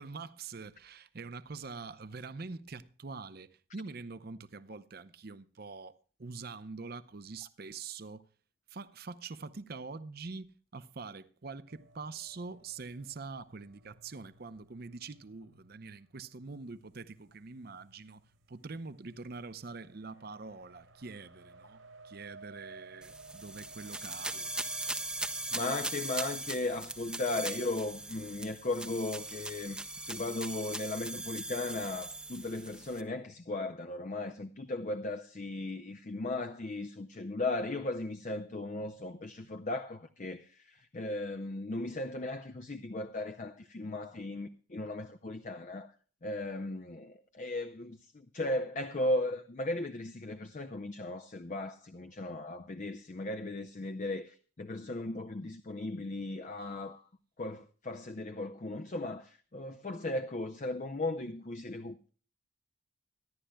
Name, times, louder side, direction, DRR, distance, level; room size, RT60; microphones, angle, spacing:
voice 1, 0.0-8.3 8.7-24.5 56.6-56.7, right 4 dB, 50° right, 0.6 m, -45 dB
sound 1, 11.7-28.4, right 3 dB, 90° right, 4.0 m, -58 dB
sound 2, 23.0-33.0, right 2 dB, 5° right, 0.6 m, -39 dB
voice 2, 25.5-45.9 46.2-57.0 57.4-62.1, left 2 dB, 35° left, 0.5 m, -37 dB
24.0 x 11.5 x 2.2 m
head